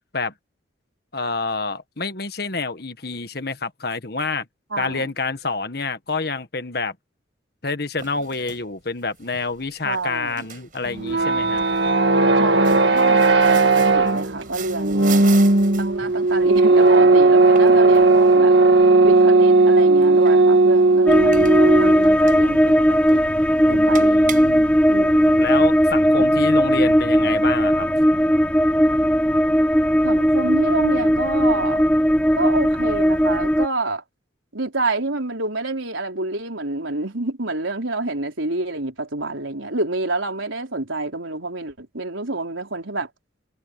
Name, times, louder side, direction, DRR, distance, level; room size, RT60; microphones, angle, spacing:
voice 1, 1.1-4.4 4.8-6.9 7.6-11.6 23.7-24.7 25.4-27.9, left 3 dB, 55° left, 1.6 m, -28 dB
voice 2, 4.7-5.1 9.8-10.5 12.4-15.3 15.8-18.5 19.0-23.2 23.7-24.2 24.9-25.5 26.2-26.3 30.0-31.9 32.4-34.0 34.5-43.1, right 2 dB, 85° right, 4.6 m, -28 dB
sound 1, 8.0-25.7, right 8 dB, 45° right, 6.1 m, -41 dB
sound 2, 10.9-22.1, right 3 dB, 65° right, 1.9 m, -15 dB
sound 3, 21.1-33.7, equal, 5° left, 1.3 m, -17 dB
head